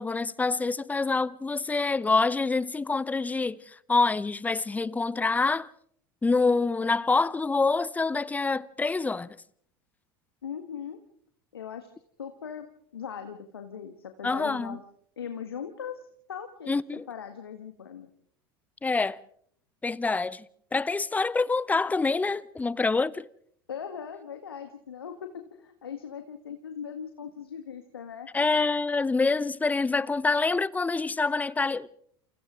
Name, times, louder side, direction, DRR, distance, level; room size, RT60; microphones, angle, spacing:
voice 1, 0.0-5.7 6.2-9.4 14.2-14.8 16.7-17.0 18.8-19.2 19.8-20.4 20.7-23.3 28.3-31.9, left 3 dB, 10° left, 0.8 m, -26 dB
voice 2, 10.4-11.0 11.5-11.9 12.2-12.7 12.9-14.8 15.2-18.1 23.7-28.3, left 7 dB, 80° left, 1.7 m, -39 dB
29.0 x 28.5 x 3.8 m
figure-of-eight pair, 80°, 12 cm